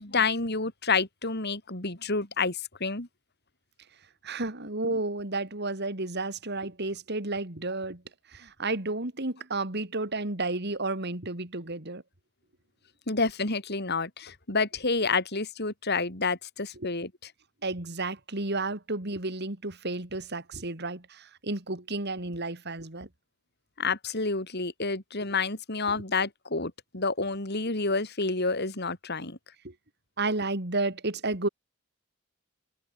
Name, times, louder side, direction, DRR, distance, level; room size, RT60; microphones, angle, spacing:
voice 1, 0.0-3.1 13.1-17.1 23.8-29.4, left 4 dB, 50° left, 3.9 m, -29 dB
voice 2, 4.2-8.0 8.3-12.0 16.8-16.9 17.6-23.1 25.9-26.0 29.6-29.7 30.2-31.5, right 2 dB, 50° right, 3.0 m, -32 dB
head